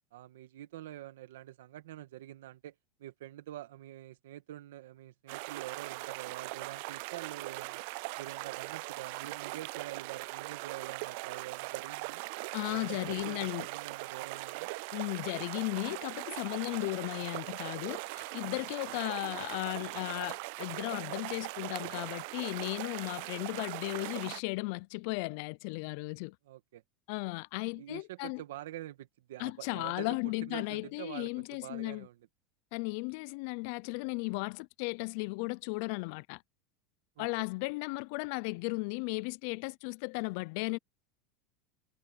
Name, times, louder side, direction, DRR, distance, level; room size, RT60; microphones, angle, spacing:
voice 1, 0.1-2.7 3.0-7.8 8.2-12.2 12.7-14.7 26.5-26.8 27.7-30.1 30.4-32.2 37.2-37.5, right 14 dB, 90° right, 1.6 m, -46 dB
sound 1, 5.3-24.4, right 26 dB, 65° right, 0.4 m, -40 dB
voice 2, 12.5-13.7 14.9-26.4 27.1-28.4 29.4-32.1 32.7-36.4 37.2-40.8, left 27 dB, 65° left, 0.5 m, -36 dB
supercardioid pair, 135°, 0 cm